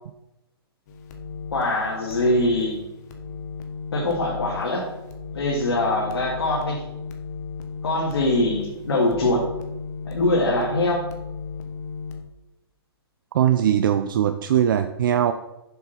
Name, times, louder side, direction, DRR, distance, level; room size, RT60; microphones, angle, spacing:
sound 1, 0.9-12.2, left 5 dB, 40° left, 1.3 m, -35 dB
voice 1, 1.5-2.8 3.9-4.9 5.3-6.8 7.8-9.5 10.1-11.1, left 1 dB, 75° left, -4 dB, 2.5 m, -23 dB
voice 2, 13.3-15.3, right 10 dB, 55° right, 9 dB, 0.5 m, -20 dB
7.2 x 6.5 x 5.8 m, 0.95 s
hypercardioid pair, 150°, 13 cm